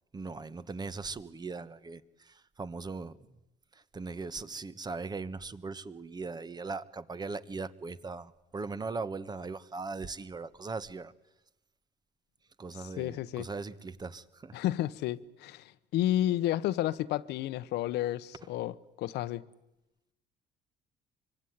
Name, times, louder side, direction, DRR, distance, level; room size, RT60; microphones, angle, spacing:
voice 1, 0.1-3.2 3.7-11.1 12.6-14.6, right 4 dB, 25° right, 1.3 m, -39 dB
voice 2, 13.0-13.5 14.5-19.4, left 13 dB, 80° left, 1.1 m, -31 dB
25.0 x 24.5 x 9.6 m
cardioid pair, 110°, 17 cm